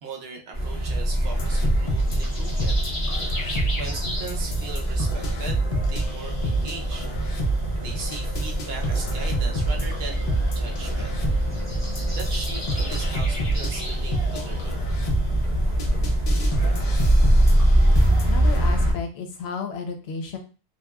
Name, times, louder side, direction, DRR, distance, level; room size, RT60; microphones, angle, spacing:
voice 1, 0.0-2.8 3.8-7.1 7.8-11.1 12.1-14.8, right 4 dB, 75° right, 2 dB, 0.9 m, -38 dB
sound 1, 0.5-18.9, equal, 30° left, 1.4 m, -24 dB
sound 2, 1.3-18.7, right 2 dB, 50° left, 0.5 m, -28 dB
sound 3, 3.7-15.7, equal, 30° right, 0.4 m, -43 dB
voice 2, 18.3-20.4, left 5 dB, 80° left, 5 dB, 0.8 m, -32 dB
2.9 x 2.2 x 2.2 m, 0.35 s
omnidirectional pair, 1.1 m